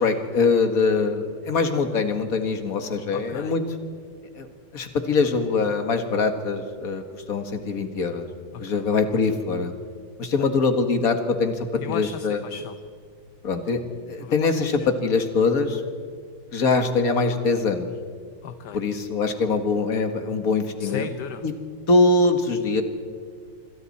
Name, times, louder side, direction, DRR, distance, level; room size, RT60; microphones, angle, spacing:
voice 1, 0.0-3.6 4.4-4.5 4.7-8.3 8.6-9.7 10.2-12.4 13.4-13.8 14.1-15.8 16.5-17.9 18.7-21.1 21.4-21.5 21.9-22.8, left 4 dB, 50° left, 6 dB, 2.0 m, -23 dB
voice 2, 3.1-3.6 8.5-8.8 10.4-10.5 11.8-12.8 14.2-14.5 14.8-14.9 18.4-18.8 20.8-21.5, left 8 dB, 65° left, 9 dB, 1.4 m, -36 dB
26.5 x 26.0 x 4.3 m, 2.1 s
omnidirectional pair, 2.1 m